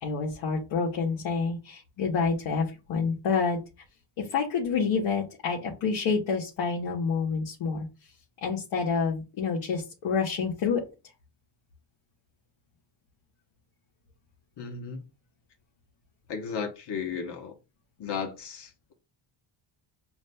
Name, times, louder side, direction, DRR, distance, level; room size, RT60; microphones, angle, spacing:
voice 1, 0.0-3.6 4.2-7.9 8.4-10.8, left 5 dB, 70° left, 1.3 m, -28 dB
voice 2, 14.6-15.0 16.3-17.5 18.0-18.9, left 6 dB, 55° left, 1.1 m, -34 dB
7.0 x 2.6 x 2.2 m
cardioid pair, 125°, 48 cm